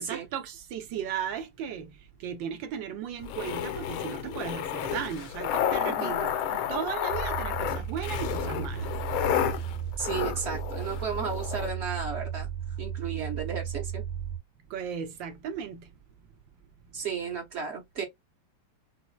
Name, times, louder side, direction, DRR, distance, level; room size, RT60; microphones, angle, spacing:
voice 1, 0.0-8.9 14.7-15.9, right 8 dB, 70° right, 1.4 m, -36 dB
sound 1, 3.2-11.7, left 9 dB, 75° left, 1.5 m, -31 dB
voice 2, 5.8-6.2 10.0-12.5 12.8-14.0 16.9-18.0, right 6 dB, 40° right, 1.1 m, -34 dB
sound 2, 7.1-14.4, right 9 dB, 85° right, 2.0 m, -35 dB
5.7 x 2.0 x 2.2 m
omnidirectional pair, 2.4 m